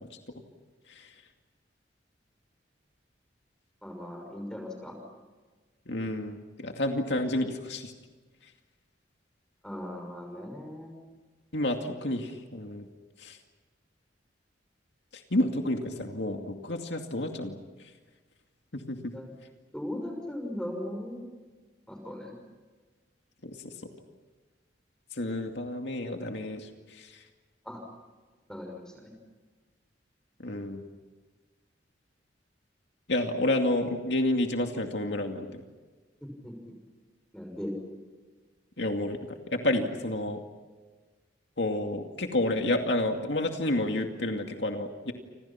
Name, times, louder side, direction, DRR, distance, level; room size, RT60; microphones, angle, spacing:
voice 1, 3.8-4.9 9.6-10.9 19.1-19.3 19.7-21.2 21.9-22.3 27.7-27.8 28.5-29.1 36.2-36.5 37.3-37.7, left 1 dB, 5° left, 2 dB, 6.1 m, -38 dB
voice 2, 5.9-7.9 11.5-12.8 13.2-13.4 15.3-17.6 18.9-19.0 23.4-23.6 25.2-26.6 30.4-30.8 33.1-35.6 38.8-39.2 39.5-40.4 41.6-45.1, left 1 dB, 70° left, 4 dB, 2.4 m, -29 dB
29.5 x 26.5 x 5.9 m, 1.4 s
head